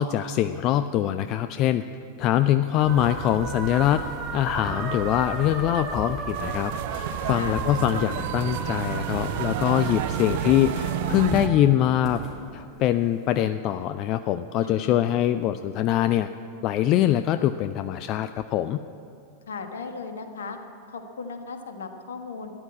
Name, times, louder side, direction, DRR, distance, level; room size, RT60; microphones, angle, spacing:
voice 1, 0.0-1.8 2.2-4.0 4.3-12.2 12.5-16.3 16.6-18.8, left 12 dB, 40° left, 11 dB, 0.4 m, -23 dB
sound 1, 2.8-11.5, right 4 dB, 35° right, 2.2 m, -34 dB
sound 2, 4.5-10.2 10.5-13.4, left 1 dB, 15° left, 3.3 m, -39 dB
sound 3, 6.3-11.5, right 15 dB, 50° right, 0.4 m, -31 dB
voice 2, 7.2-7.6 14.6-15.0 19.5-20.6 20.9-22.5, left 4 dB, 65° left, 6 dB, 1.4 m, -36 dB
13.5 x 10.5 x 8.6 m, 2.5 s
figure-of-eight pair, 90°, 0 cm